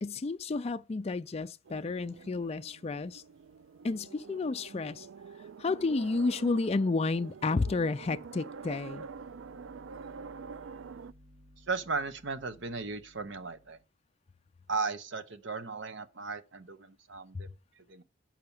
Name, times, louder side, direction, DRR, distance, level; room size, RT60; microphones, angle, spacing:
voice 1, 0.0-3.2 3.8-5.1 5.6-9.1 17.3-17.4, left 3 dB, 35° left, 0.4 m, -31 dB
sound 1, 1.7-11.1, right 5 dB, 85° right, 0.4 m, -47 dB
sound 2, 8.5-13.8, equal, 50° right, 4.8 m, -58 dB
voice 2, 11.6-13.8 14.7-17.5 17.7-18.0, right 4 dB, 70° right, 0.9 m, -36 dB
7.4 x 5.8 x 7.0 m
head